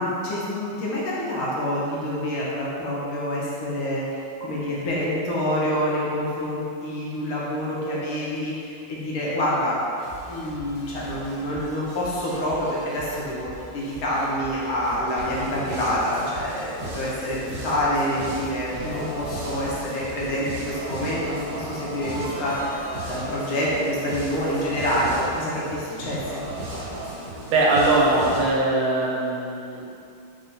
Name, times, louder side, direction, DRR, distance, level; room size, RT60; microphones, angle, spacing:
voice 1, 0.0-9.8 10.3-26.4, equal, 75° left, -6 dB, 1.5 m, -27 dB
sound 1, 10.0-20.4, right 2 dB, 50° left, 0.9 m, -43 dB
sound 2, 15.2-28.5, right 1 dB, 65° right, 1.0 m, -35 dB
voice 2, 27.5-29.8, right 2 dB, 80° right, -3 dB, 1.5 m, -21 dB
3.9 x 2.2 x 3.8 m, 2.6 s
omnidirectional pair, 2.4 m